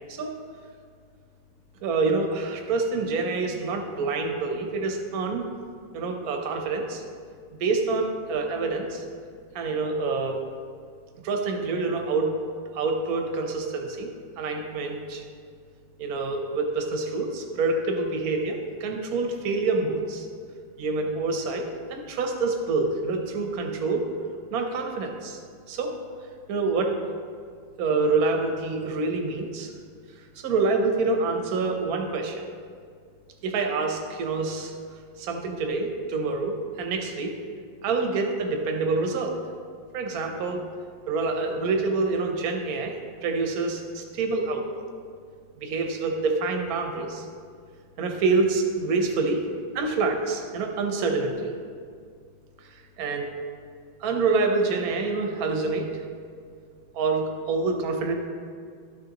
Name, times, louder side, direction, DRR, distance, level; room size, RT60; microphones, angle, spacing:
voice 1, 1.8-5.5 5.9-7.0 7.6-9.0 9.5-10.4 11.2-12.3 12.7-14.1 14.4-15.2 16.0-20.3 20.8-24.1 24.5-25.4 25.7-25.9 26.5-27.0 27.8-29.7 30.4-32.4 33.4-34.7 35.2-37.3 37.8-39.3 39.9-40.7 41.1-42.9 43.2-44.6 45.6-47.2 48.0-49.4 49.7-51.6 53.0-53.3 54.0-55.9 56.9-58.1, right 3 dB, 60° right, 3 dB, 1.1 m, -26 dB
12.5 x 6.4 x 2.9 m, 2.1 s
omnidirectional pair, 2.2 m